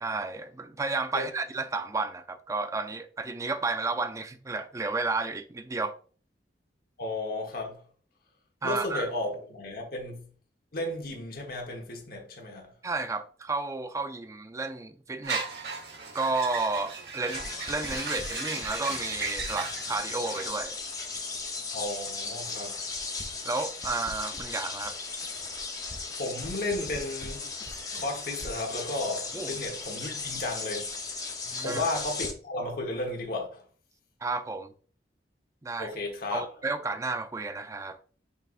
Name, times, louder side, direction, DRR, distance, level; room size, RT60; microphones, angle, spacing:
voice 1, 0.0-5.9 8.6-9.1 12.8-15.4 16.1-20.8 23.4-25.0 29.3-29.6 31.5-31.8 34.2-34.7 35.6-35.9 36.3-38.0, right 3 dB, 15° right, 0.4 m, -32 dB
voice 2, 7.0-7.8 8.6-10.3 10.7-12.7 21.7-22.8 26.2-27.5 27.9-30.9 31.6-33.6 35.8-36.4, left 2 dB, 55° left, 1.2 m, -33 dB
sound 1, 15.2-20.5, right 4 dB, 65° right, 1.1 m, -37 dB
sound 2, 17.3-32.3, left 3 dB, 20° left, 0.7 m, -36 dB
5.4 x 3.8 x 2.5 m
head